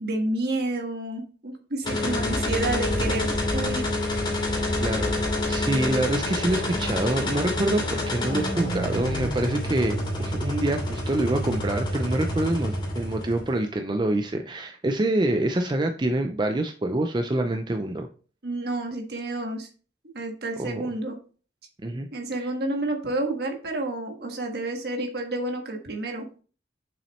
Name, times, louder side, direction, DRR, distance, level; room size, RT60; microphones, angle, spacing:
voice 1, 0.0-3.9 18.4-19.7 20.1-21.2 22.1-26.3, right 2 dB, 60° right, 3 dB, 1.5 m, -30 dB
sound 1, 1.8-13.5, left 1 dB, 25° left, 2.8 m, -27 dB
voice 2, 4.7-18.1 20.6-20.8 21.8-22.1 22.4-22.5, right 1 dB, 25° right, 6 dB, 0.4 m, -26 dB
7.0 x 5.9 x 3.1 m, 0.39 s
head